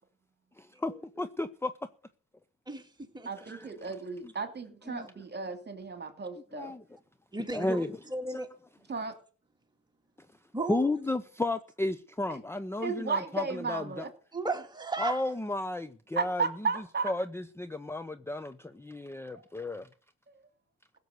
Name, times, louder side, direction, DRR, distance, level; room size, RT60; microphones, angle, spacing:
voice 1, 0.6-1.7 3.4-3.7 4.9-5.1 6.5-6.8 7.5-7.9 8.3-8.4 10.7-14.1 15.0-16.7 17.0-19.9, left 2 dB, 10° left, 0.7 m, -33 dB
voice 2, 2.7-3.3 4.9-5.1 7.3-8.5 10.5-10.9 14.3-15.2, right 3 dB, 15° right, 2.4 m, -35 dB
voice 3, 3.3-6.7 8.9-9.2 12.8-14.1 16.2-17.1 19.3-19.4 20.3-20.4, right 4 dB, 35° right, 2.7 m, -34 dB
16.5 x 6.9 x 8.0 m
cardioid pair, 90°, 30 cm